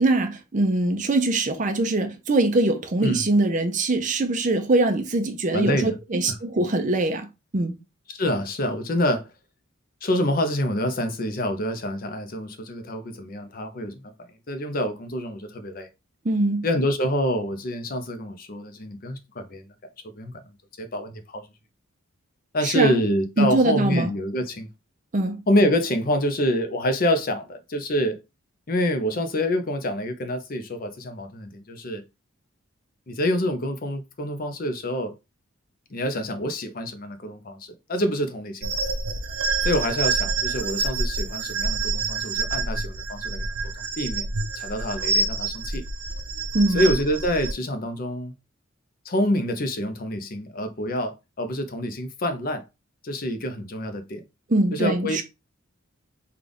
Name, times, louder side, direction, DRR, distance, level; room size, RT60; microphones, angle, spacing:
voice 1, 0.0-7.8 16.2-16.6 22.6-23.0 23.4-24.1 25.1-25.4 46.5-46.9 54.5-55.2, right 2 dB, 35° right, 0.5 m, -22 dB
voice 2, 5.5-6.0 6.3-6.4 8.1-9.3 10.0-14.1 14.5-15.9 16.6-19.7 20.2-20.4 20.8-21.5 22.5-24.7 25.5-28.2 28.7-32.0 33.1-35.1 35.9-38.8 39.6-43.5 44.0-44.3 44.5-45.8 46.7-48.3 49.0-52.6 53.0-54.2 54.7-55.2, left 1 dB, 45° left, 0.5 m, -26 dB
sound 1, 38.6-47.5, right 3 dB, 85° right, 0.6 m, -27 dB
3.8 x 2.3 x 3.3 m
head